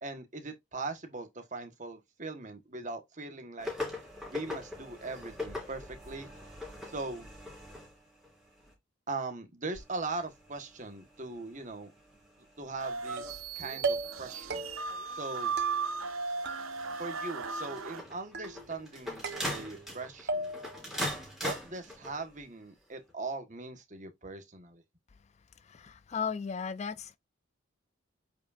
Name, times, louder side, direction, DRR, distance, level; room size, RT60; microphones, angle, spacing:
voice 1, 0.0-3.7 4.3-6.3 6.9-7.3 9.1-11.9 12.6-14.6 15.1-15.5 17.0-20.5 21.4-24.8, right 3 dB, 35° right, 1.4 m, -40 dB
sound 1, 3.6-8.7 9.8-22.4 23.1-23.2, left 1 dB, ahead, 3.3 m, -43 dB
sound 2, 12.8-18.0, right 5 dB, 80° right, 0.8 m, -36 dB
sound 3, 13.2-13.5 13.8-14.2 14.5-15.0 15.6-16.2 16.5-17.1 17.4-18.0 18.3-18.9 19.2-19.9 20.3-20.8, right 3 dB, 50° right, 1.1 m, -37 dB
voice 2, 25.7-27.2, left 6 dB, 30° left, 0.3 m, -35 dB
8.0 x 4.9 x 2.6 m
head